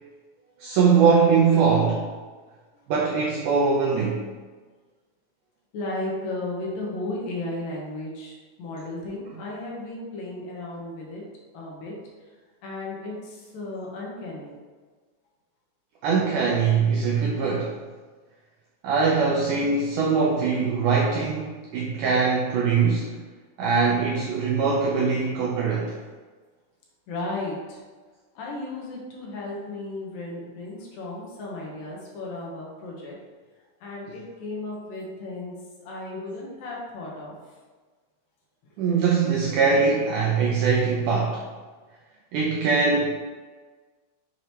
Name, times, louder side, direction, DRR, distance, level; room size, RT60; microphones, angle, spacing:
voice 1, 0.6-2.1 2.9-4.2 9.4-9.5 16.0-17.7 18.8-23.1 23.6-26.0 38.8-41.4 42.3-43.1, right 5 dB, 85° right, -2 dB, 1.8 m, -22 dB
voice 2, 5.7-11.2 11.5-11.9 12.6-14.6 27.1-27.8 28.4-33.2 33.8-35.5 35.8-37.4 38.8-39.1, left 2 dB, 70° left, -3 dB, 2.7 m, -34 dB
6.9 x 4.9 x 3.0 m, 1.4 s
omnidirectional pair, 4.3 m